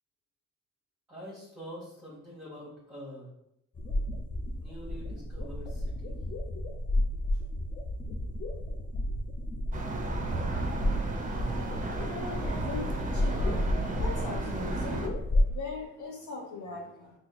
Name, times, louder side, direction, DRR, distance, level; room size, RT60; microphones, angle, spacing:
voice 1, 1.1-3.3 4.6-6.2 7.3-7.4, equal, 5° right, -7 dB, 1.1 m, -45 dB
sound 1, 3.7-15.5, left 1 dB, 30° left, 0.5 m, -31 dB
sound 2, 9.7-15.1, right 3 dB, 25° right, 0.5 m, -35 dB
voice 2, 12.0-13.5 14.0-15.1 15.4-17.1, left 3 dB, 75° left, 0 dB, 1.0 m, -40 dB
3.2 x 2.0 x 4.0 m, 0.80 s
cardioid pair, 90°, 30 cm